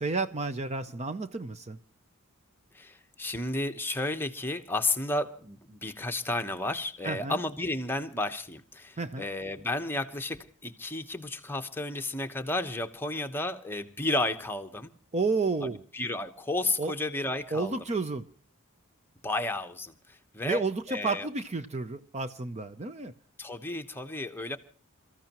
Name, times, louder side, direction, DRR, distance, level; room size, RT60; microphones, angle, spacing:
voice 1, 0.0-1.8 7.0-7.4 9.0-9.2 15.1-15.8 16.8-16.9 17.5-18.3 20.4-23.1, right 3 dB, 30° right, 0.6 m, -31 dB
voice 2, 2.7-14.9 15.6-17.8 19.2-20.6 20.9-21.3 23.4-24.6, left 2 dB, 10° left, 1.1 m, -32 dB
28.5 x 14.5 x 3.0 m
head